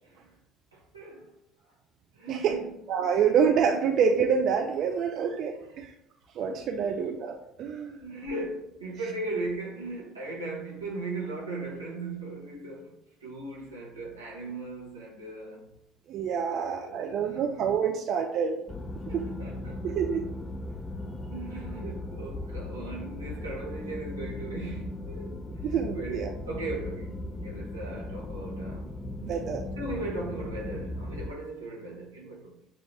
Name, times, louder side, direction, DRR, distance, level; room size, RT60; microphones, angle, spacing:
voice 1, 0.0-0.4 0.7-1.4 2.1-2.8 5.6-5.9 6.8-7.0 7.9-15.7 16.5-17.4 19.1-20.0 21.3-29.0 29.8-32.7, right 2 dB, 90° right, 1.0 m, -38 dB
voice 2, 2.3-2.6 2.9-5.9 6.3-8.0 16.1-18.6 19.1-19.3 19.8-20.2 25.6-26.3 29.2-29.6, right 7 dB, 55° right, 0.4 m, -27 dB
sound 1, 18.7-31.3, left 1 dB, 20° left, 0.5 m, -37 dB
6.5 x 2.4 x 3.1 m
figure-of-eight pair, 60°, 0 cm